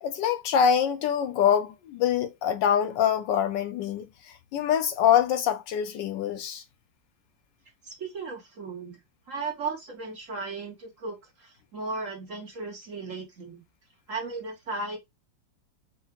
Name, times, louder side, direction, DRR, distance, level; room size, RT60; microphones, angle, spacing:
voice 1, 0.0-6.6, left 8 dB, 75° left, 1.3 m, -25 dB
voice 2, 7.8-9.0 9.3-13.6 14.1-15.0, right 3 dB, 50° right, 1.2 m, -36 dB
4.6 x 2.1 x 3.5 m
omnidirectional pair, 2.0 m